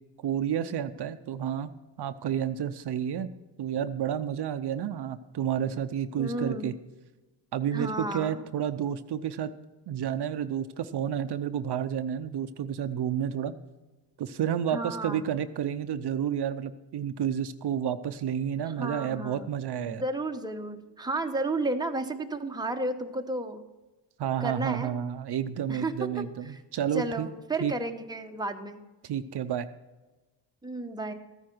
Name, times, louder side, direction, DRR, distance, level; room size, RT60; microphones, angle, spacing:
voice 1, 0.2-1.7 2.0-3.3 3.6-6.7 7.5-9.5 9.9-13.5 14.2-20.0 24.2-27.3 27.6-27.7 29.0-29.7, right 9 dB, 65° right, 10 dB, 0.6 m, -30 dB
voice 2, 6.2-6.7 7.7-8.4 14.7-15.3 18.6-19.5 19.9-23.6 24.4-24.9 25.7-26.2 26.9-28.8 30.6-31.1, right 2 dB, 10° right, 4 dB, 0.9 m, -32 dB
14.0 x 9.6 x 4.5 m, 1.2 s
cardioid pair, 100°, 43 cm